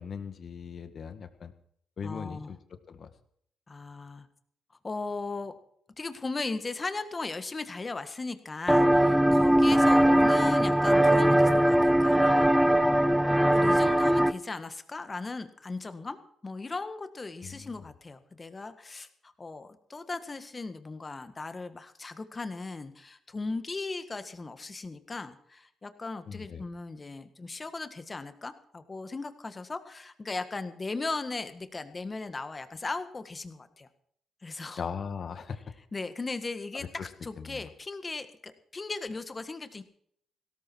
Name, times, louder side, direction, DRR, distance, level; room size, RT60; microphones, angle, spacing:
voice 1, 0.0-1.5 2.0-2.6 2.9-3.1 17.4-17.9 26.3-26.6 34.8-35.6 37.0-37.1 37.4-37.7, left 6 dB, 55° left, 9 dB, 1.7 m, -39 dB
voice 2, 2.0-2.5 3.7-4.3 4.8-5.5 6.0-13.2 13.5-33.9 34.4-34.9 35.9-39.8, left 3 dB, 30° left, 10 dB, 1.7 m, -37 dB
sound 1, 8.7-14.3, right 1 dB, 5° right, 0.9 m, -21 dB
17.0 x 13.5 x 4.6 m, 0.66 s
supercardioid pair, 60°, 0 cm